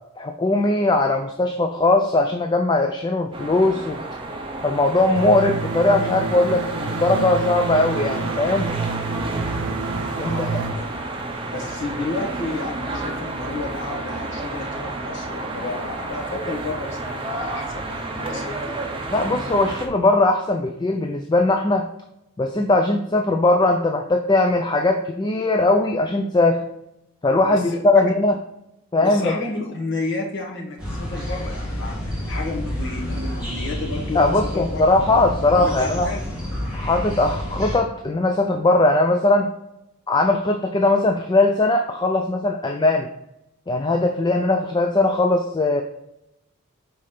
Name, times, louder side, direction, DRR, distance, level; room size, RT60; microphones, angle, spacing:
voice 1, 0.2-4.0 4.6-8.7 10.2-10.6 19.1-21.9 22.4-26.6 27.2-28.3 28.9-29.4 34.1-36.1 36.7-39.5 40.1-43.1 43.7-45.8, left 2 dB, 20° left, 5 dB, 0.3 m, -19 dB
sound 1, 3.3-19.9, right 2 dB, 25° right, 0.7 m, -31 dB
sound 2, 5.2-10.7, right 4 dB, 75° right, 0.5 m, -29 dB
voice 2, 10.2-10.9 11.5-18.7 27.5-28.0 29.0-34.8 35.5-36.2, left 3 dB, 55° left, -1 dB, 1.5 m, -31 dB
sound 3, 30.8-37.8, left 1 dB, 5° right, 1.8 m, -29 dB
4.9 x 4.2 x 5.7 m, 0.84 s
head